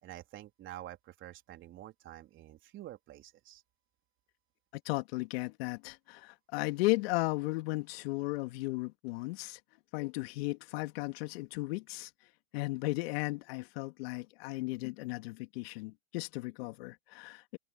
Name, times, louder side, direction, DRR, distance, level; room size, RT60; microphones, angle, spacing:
voice 1, 0.0-3.6, right 14 dB, 30° right, 3.8 m, -48 dB
voice 2, 4.8-9.6 9.9-12.1 12.5-17.6, left 22 dB, 50° left, 2.5 m, -35 dB
hypercardioid pair, 125°, 39 cm